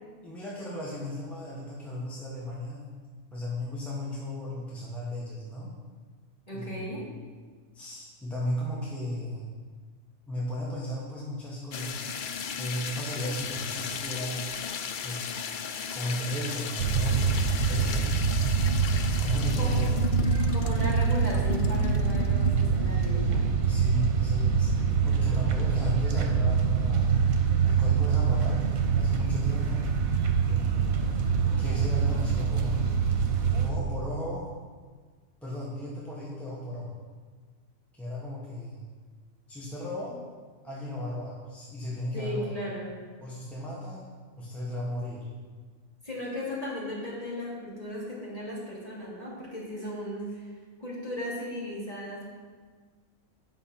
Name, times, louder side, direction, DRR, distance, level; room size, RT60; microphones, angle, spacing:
voice 1, 0.2-2.9 3.3-5.7 6.5-7.1 7.7-9.5 10.3-12.0 12.5-14.5 15.0-15.5 15.9-18.2 19.2-20.0 23.7-27.1 27.6-29.8 30.5-31.1 31.6-33.0 33.6-34.5 35.4-36.9 37.9-38.8 39.5-40.2 40.6-42.5 43.2-44.0 44.4-45.3, left 1 dB, ahead, -6 dB, 1.2 m, -35 dB
voice 2, 6.5-7.1 19.6-19.8 20.5-23.4 42.1-43.0 46.0-50.5 50.8-52.2, equal, 25° left, -7 dB, 2.8 m, -36 dB
sound 1, 11.7-23.1, left 6 dB, 60° left, 0.5 m, -35 dB
sound 2, 16.8-33.7, right 6 dB, 90° right, 1.4 m, -25 dB
9.3 x 5.9 x 5.8 m, 1.5 s
omnidirectional pair, 1.4 m